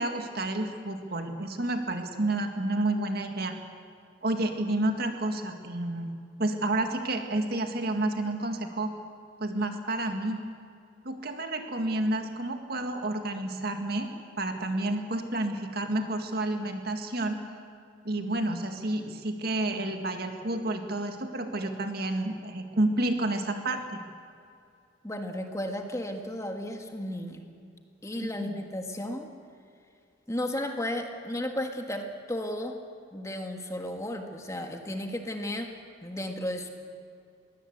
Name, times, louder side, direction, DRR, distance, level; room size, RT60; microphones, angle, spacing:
voice 1, 0.0-3.5 4.2-6.1 6.4-8.9 9.4-10.4 11.0-14.1 14.4-17.4 18.0-24.0 28.2-28.5, right 2 dB, 55° right, 5 dB, 1.9 m, -30 dB
voice 2, 25.0-27.4 28.0-29.3 30.3-32.8 33.1-35.7 36.0-36.7, left 1 dB, 15° left, 4 dB, 1.6 m, -34 dB
22.0 x 17.0 x 8.1 m, 2.4 s
head